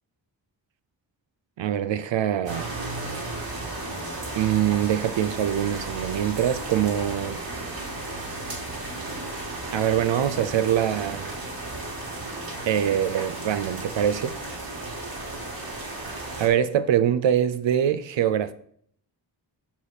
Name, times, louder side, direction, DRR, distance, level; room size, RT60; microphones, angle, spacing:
voice 1, 1.6-2.7 4.4-7.4 9.7-11.3 12.7-14.3 16.4-18.5, right 10 dB, 75° right, 0.5 m, -24 dB
sound 1, 2.5-16.5, right 2 dB, 50° right, 2.5 m, -34 dB
7.4 x 6.6 x 4.1 m
wide cardioid pair, 135°, 45 cm